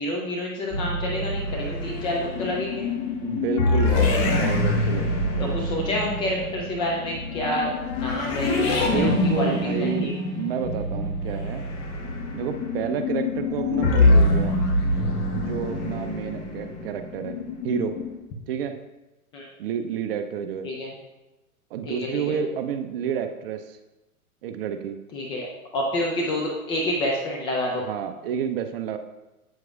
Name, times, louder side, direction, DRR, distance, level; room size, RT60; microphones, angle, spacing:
voice 1, 0.0-2.9 5.4-10.1 19.3-19.5 20.6-20.9 21.8-22.4 25.1-27.8, left 1 dB, 10° left, -2 dB, 0.4 m, -28 dB
sound 1, 0.7-18.2, left 2 dB, 30° left, 1.3 m, -25 dB
voice 2, 3.2-5.6 8.9-11.7 12.3-14.6 15.3-17.4 17.6-18.0 18.5-18.8 19.6-20.7 21.7-23.8 24.4-25.0 27.8-29.0, right 8 dB, 40° right, 8 dB, 0.6 m, -30 dB
8.1 x 7.5 x 2.4 m, 1.0 s
hypercardioid pair, 115°, 44 cm